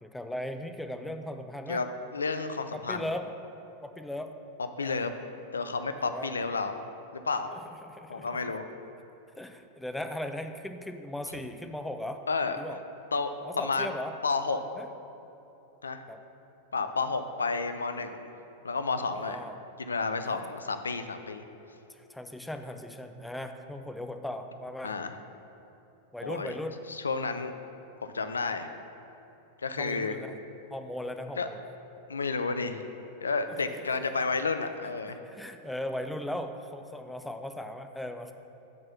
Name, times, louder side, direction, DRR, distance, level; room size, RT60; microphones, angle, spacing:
voice 1, 0.0-1.8 2.7-3.3 3.8-4.3 4.8-5.1 6.0-6.5 7.5-8.5 9.4-12.8 13.4-14.1 14.7-14.9 16.1-16.2 18.9-19.6 20.2-20.4 21.9-25.0 26.1-26.8 29.8-30.3 30.7-31.6 33.5-33.6 34.1-34.2 35.2-38.3, left 1 dB, 5° left, 7 dB, 0.4 m, -38 dB
voice 2, 2.1-3.1 4.8-5.1 5.5-6.7 7.3-7.5 8.1-8.7 12.3-12.6 13.1-13.9 14.2-14.6 15.8-16.0 16.7-18.3 18.6-19.4 19.8-21.4 24.8-25.1 26.2-26.5 26.9-27.5 28.1-28.7 29.6-30.2 31.4-31.5 32.1-32.8 33.2-35.2, left 4 dB, 75° left, 9 dB, 0.3 m, -31 dB
6.0 x 4.3 x 5.8 m, 2.9 s
figure-of-eight pair, 90°, 0 cm